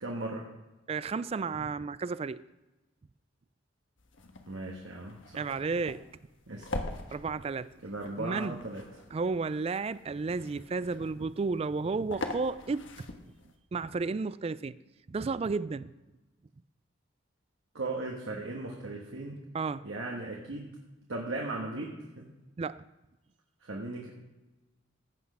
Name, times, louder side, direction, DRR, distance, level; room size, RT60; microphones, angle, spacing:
voice 1, 0.0-0.4 4.5-5.4 6.5-6.7 7.8-8.8 17.7-19.4 19.8-20.7 21.1-22.3 23.6-24.1, right 2 dB, 80° right, -1 dB, 1.4 m, -37 dB
voice 2, 0.9-2.4 5.3-6.0 7.1-7.7 8.2-8.6 9.1-13.1 13.7-14.8 15.1-15.9 19.5-19.9 22.6-22.8, right 4 dB, 30° right, 17 dB, 0.3 m, -32 dB
sound 1, 4.0-13.6, left 2 dB, 75° left, 1.2 m, -44 dB
15.5 x 6.2 x 5.5 m, 1.1 s
head